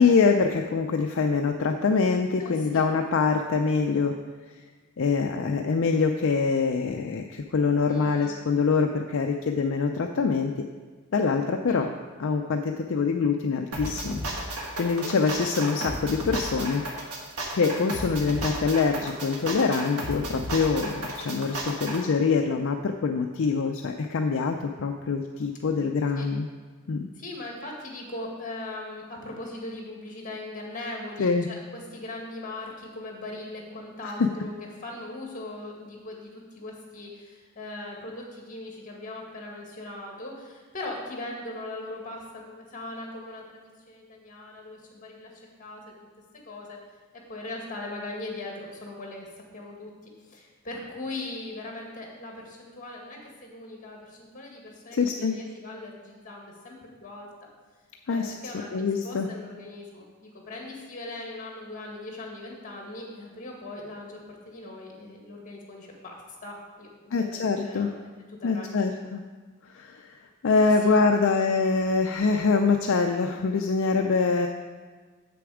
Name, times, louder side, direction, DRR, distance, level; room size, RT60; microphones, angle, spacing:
voice 1, 0.0-4.1 5.0-10.6 11.1-11.9 12.2-14.5 14.8-16.8 17.5-26.5 26.9-27.1 31.2-31.5 34.0-34.1 54.9-55.4 58.1-58.3 58.7-59.3 67.1-67.9 68.4-69.2 69.7-70.2 70.4-74.5, left 4 dB, 60° left, 4 dB, 0.4 m, -24 dB
voice 2, 2.4-2.8 7.8-8.3 11.7-11.9 15.0-15.1 26.2-26.3 27.1-34.5 34.8-45.8 46.3-46.8 47.3-49.3 49.5-57.3 58.1-68.0 68.3-68.9 70.5-71.2, left 2 dB, 35° left, -1 dB, 1.8 m, -40 dB
sound 1, 13.7-22.0, right 1 dB, 90° right, 1.5 m, -33 dB
7.8 x 6.8 x 4.9 m, 1.5 s
head